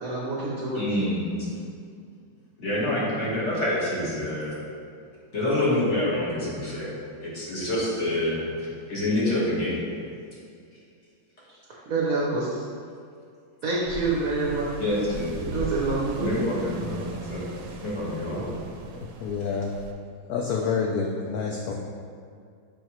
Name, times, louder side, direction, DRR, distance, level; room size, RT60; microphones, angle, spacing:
voice 1, 0.0-0.8 11.9-12.6 13.6-14.7 15.4-16.4, right 3 dB, 60° right, -4 dB, 1.0 m, -27 dB
voice 2, 0.7-1.3 2.6-4.5 5.3-9.8 14.8-15.3 16.2-17.5 17.8-18.6, left 1 dB, 40° left, -7 dB, 1.5 m, -27 dB
sound 1, 13.9-19.9, right 4 dB, 75° right, 1.2 m, -39 dB
voice 3, 18.9-19.7 20.3-21.7, left 5 dB, 80° left, 0 dB, 0.8 m, -28 dB
7.2 x 4.6 x 3.0 m, 2.3 s
omnidirectional pair, 2.1 m